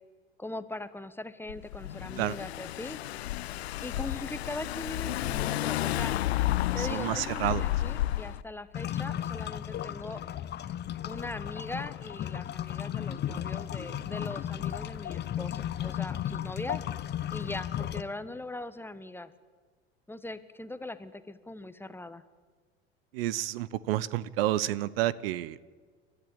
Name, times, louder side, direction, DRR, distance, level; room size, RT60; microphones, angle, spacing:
voice 1, 0.4-3.0 3.8-6.1 6.7-10.2 11.0-16.8 17.3-19.3 20.1-22.2, left 2 dB, 5° left, 13 dB, 1.2 m, -40 dB
Car / Engine, 1.5-8.4, left 15 dB, 70° left, 0.6 m, -31 dB
voice 2, 6.8-7.6 23.1-25.6, right 15 dB, 60° right, 20 dB, 0.8 m, -30 dB
sound 1, 8.7-18.0, left 10 dB, 30° left, 1.0 m, -35 dB
29.0 x 13.0 x 9.0 m, 1.5 s
figure-of-eight pair, 75°, 33 cm